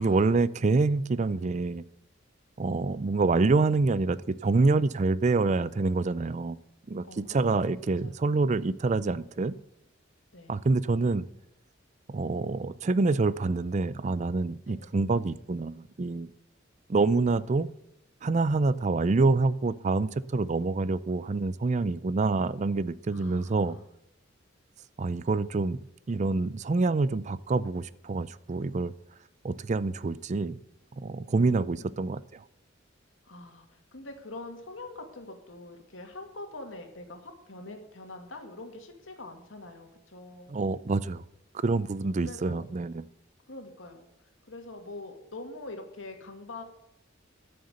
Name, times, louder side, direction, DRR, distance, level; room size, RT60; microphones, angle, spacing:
voice 1, 0.0-1.8 2.6-6.6 6.9-9.6 10.5-11.3 12.1-16.3 16.9-17.7 18.2-23.8 25.0-25.8 26.1-28.9 29.4-30.6 31.0-32.4 40.5-41.2 41.6-43.1, right 3 dB, 35° right, 18 dB, 0.4 m, -26 dB
voice 2, 7.0-8.3 10.3-10.5 14.7-14.9 23.1-23.8 31.3-32.0 33.2-40.5 42.2-42.8 43.5-44.1 44.5-46.6, left 2 dB, 90° left, 4 dB, 2.2 m, -44 dB
13.0 x 6.7 x 6.6 m, 0.84 s
head